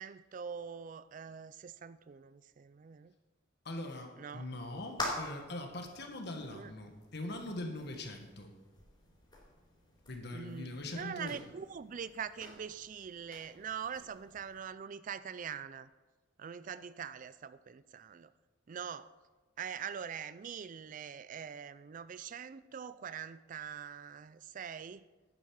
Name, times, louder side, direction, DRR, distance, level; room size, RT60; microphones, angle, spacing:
voice 1, 0.0-3.1 4.2-4.5 6.5-6.7 10.3-15.9 16.4-18.3 18.7-19.1 19.6-25.0, right 7 dB, 40° right, 15 dB, 0.4 m, -43 dB
voice 2, 3.6-8.5 10.1-11.4, left 1 dB, 60° left, 3 dB, 1.7 m, -42 dB
sound 1, 4.5-14.6, left 2 dB, 25° left, 3.8 m, -47 dB
11.0 x 9.3 x 4.8 m, 1.2 s
head